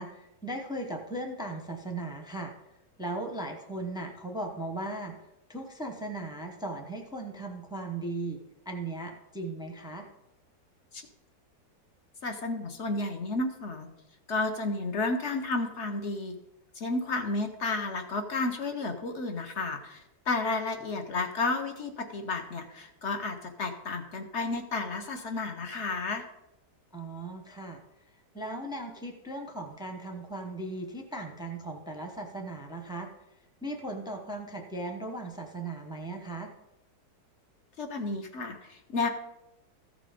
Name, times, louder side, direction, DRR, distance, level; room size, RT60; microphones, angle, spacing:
voice 1, 0.0-2.5 3.0-5.1 5.5-8.4 8.6-10.1 26.9-27.8 28.3-33.1 33.6-36.5, right 2 dB, 5° right, 3 dB, 0.6 m, -37 dB
voice 2, 12.2-13.9 14.3-16.4 16.7-26.3 37.8-39.1, left 3 dB, 50° left, 5 dB, 1.0 m, -32 dB
14.5 x 5.1 x 5.1 m, 0.91 s
omnidirectional pair, 1.9 m